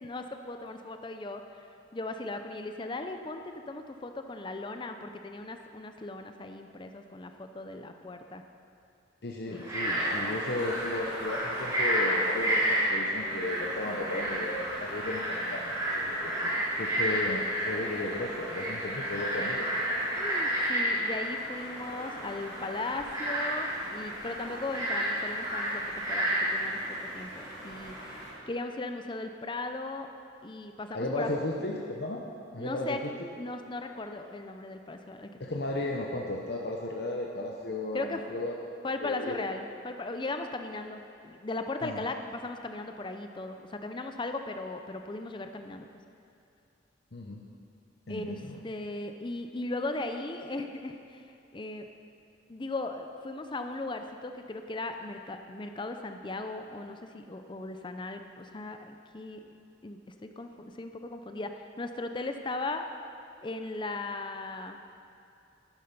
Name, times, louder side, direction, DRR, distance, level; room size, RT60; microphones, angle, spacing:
voice 1, 0.0-8.4 9.5-9.7 20.2-25.8 26.1-26.8 27.1-27.9 28.5-30.1 30.4-31.3 32.6-33.0 33.4-35.4 37.9-38.2 38.8-45.9 48.1-48.4 48.6-51.9 52.5-59.5 59.8-62.8 63.4-64.8, left 2 dB, 25° left, 6 dB, 0.5 m, -37 dB
voice 2, 9.2-19.7 30.9-32.2 32.5-33.3 35.4-38.5 39.0-39.4 41.8-42.0 47.1-47.5 48.1-48.6, left 2 dB, 60° left, 0 dB, 0.9 m, -35 dB
Frog, 9.5-28.3, right 1 dB, 20° right, 3.3 m, -31 dB
11.5 x 10.0 x 5.4 m, 2.6 s
head